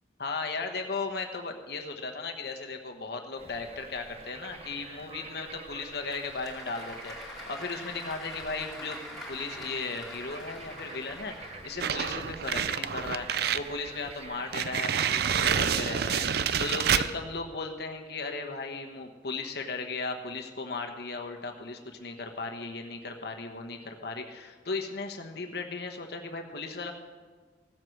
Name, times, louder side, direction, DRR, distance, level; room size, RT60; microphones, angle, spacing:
voice 1, 0.2-9.0 9.3-26.9, left 3 dB, 60° left, 4 dB, 1.1 m, -36 dB
Bird / Frog, 3.3-17.1, right 4 dB, 35° right, 0.8 m, -48 dB
Applause / Crowd, 5.7-12.4, left 1 dB, 5° left, 2.6 m, -45 dB
sound 1, 11.8-13.7 14.1-14.2 14.5-17.1, right 8 dB, 60° right, 0.5 m, -28 dB
16.0 x 7.7 x 6.5 m, 1.5 s
head